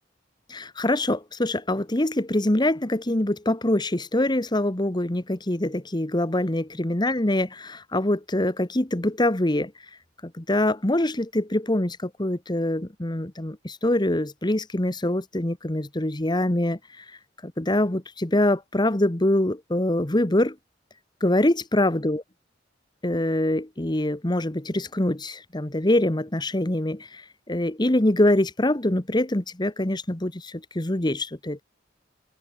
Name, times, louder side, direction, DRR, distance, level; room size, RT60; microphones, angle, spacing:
voice 1, 0.5-9.7 10.2-17.0 17.4-20.5 21.2-22.2 23.0-31.6, left 1 dB, 25° left, 1.4 m, -24 dB
head